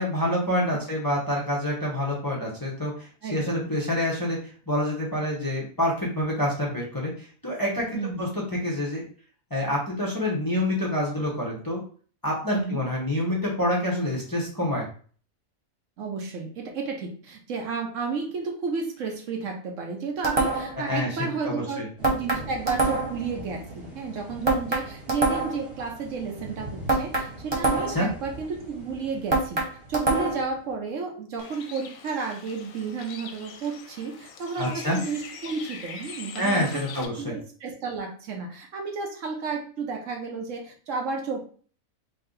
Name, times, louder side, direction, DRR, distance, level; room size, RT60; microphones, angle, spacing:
voice 1, 0.0-4.4 4.7-9.0 9.5-11.8 12.2-14.8 20.8-21.1 21.4-21.9 27.9-28.1 34.6-35.0 36.4-37.3, left 1 dB, 20° left, -4 dB, 0.8 m, -27 dB
voice 2, 3.2-3.7 7.9-8.3 12.5-12.8 16.0-41.4, right 4 dB, 70° right, 2 dB, 1.1 m, -32 dB
sound 1, 20.2-20.8 22.0-23.3 24.5-25.7 26.9-28.1 29.3-30.5, right 2 dB, 30° right, 0.5 m, -25 dB
sound 2, 22.0-30.8, right 1 dB, 10° right, 1.4 m, -43 dB
Bird, 31.4-37.1, left 6 dB, 80° left, 1.0 m, -42 dB
3.3 x 2.7 x 3.7 m, 0.43 s
omnidirectional pair, 1.4 m